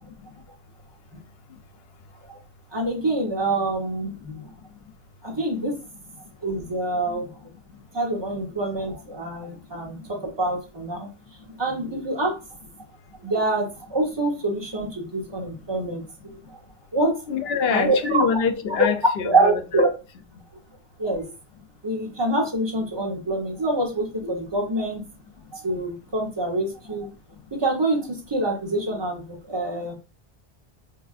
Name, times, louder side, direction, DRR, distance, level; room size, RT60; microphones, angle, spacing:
voice 1, 2.7-4.4 5.2-5.7 6.4-7.3 7.9-11.1 11.6-12.3 13.2-16.0 16.9-17.2 17.7-18.2 18.8-18.9 19.2-19.9 21.0-21.3 21.8-25.0 25.5-27.1 27.5-29.9, right 2 dB, 25° right, 1.0 m, -25 dB
voice 2, 4.0-4.5 6.9-7.0 7.7-7.8 15.3-15.4 16.2-16.3 17.3-19.8, left 6 dB, 75° left, 0.8 m, -26 dB
4.6 x 2.5 x 2.4 m
omnidirectional pair, 1.1 m